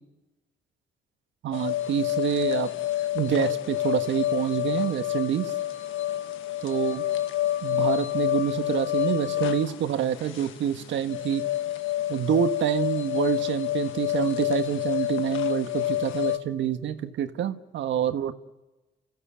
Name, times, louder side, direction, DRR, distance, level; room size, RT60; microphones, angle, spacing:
voice 1, 1.4-2.7 3.1-5.5 6.6-7.0 7.6-11.4 12.1-18.3, right 9 dB, 70° right, 9 dB, 1.4 m, -27 dB
sound 1, 1.5-16.4, left 13 dB, 90° left, 1.4 m, -28 dB
30.0 x 15.5 x 8.7 m, 1.1 s
cardioid pair, 115°, 20 cm